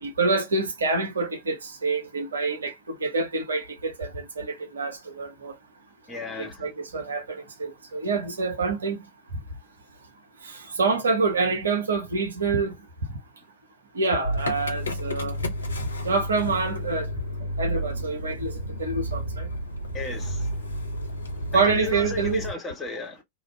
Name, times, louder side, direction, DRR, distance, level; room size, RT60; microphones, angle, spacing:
voice 1, 0.0-5.5 6.4-9.0 10.4-12.8 13.9-15.4 15.8-17.1 17.6-19.5 21.5-22.4, right 4 dB, 70° right, 0.7 m, -27 dB
voice 2, 6.1-6.6 19.9-20.6 21.5-23.2, left 4 dB, 15° left, 1.1 m, -34 dB
Motor vehicle (road) / Engine starting, 14.2-22.5, equal, 75° left, 0.6 m, -31 dB
2.4 x 2.3 x 3.2 m
figure-of-eight pair, 90°, 0 cm